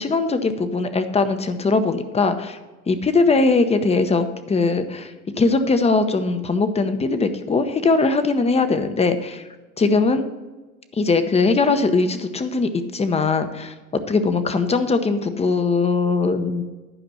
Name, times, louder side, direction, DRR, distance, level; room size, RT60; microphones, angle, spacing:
voice 1, 0.0-2.6 2.9-9.4 9.8-10.3 10.9-13.7 14.1-16.6, left 3 dB, 15° left, 9 dB, 0.8 m, -20 dB
11.0 x 5.1 x 6.3 m, 1.2 s
supercardioid pair, 110°, 37 cm